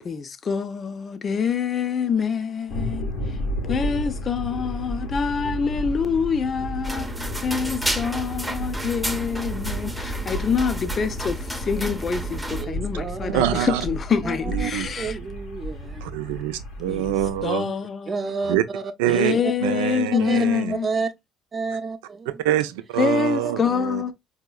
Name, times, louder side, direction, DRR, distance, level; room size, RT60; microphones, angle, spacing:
voice 1, 0.0-3.4 3.6-7.1 7.4-15.2 16.9-17.2 17.4-18.4 19.1-20.9 23.0-24.1, left 6 dB, 45° left, 0.5 m, -26 dB
sound 1, 2.7-17.5, equal, 85° left, 1.2 m, -32 dB
sound 2, 6.8-12.7, right 1 dB, 5° right, 0.7 m, -31 dB
voice 2, 12.6-13.8 14.2-16.5 18.1-19.5 20.1-20.4 20.7-21.1 21.5-22.4 23.4-23.5, right 5 dB, 40° right, 0.7 m, -31 dB
voice 3, 13.3-13.8 14.5-14.9 16.0-17.7 18.5-18.6 19.0-19.3 19.6-20.7 22.3-24.0, right 12 dB, 85° right, 0.4 m, -25 dB
4.6 x 2.8 x 2.2 m
hypercardioid pair, 65°, 0 cm